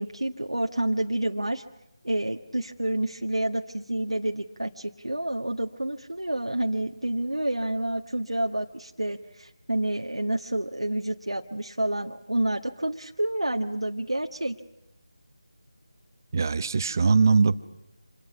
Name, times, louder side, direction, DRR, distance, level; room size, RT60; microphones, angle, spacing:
voice 1, 0.0-1.6 2.0-14.6, right 1 dB, 85° right, 2 dB, 1.5 m, -29 dB
voice 2, 16.3-17.5, right 4 dB, 40° right, 13 dB, 1.0 m, -21 dB
28.5 x 27.0 x 6.0 m, 0.85 s
figure-of-eight pair, 160°, 3 cm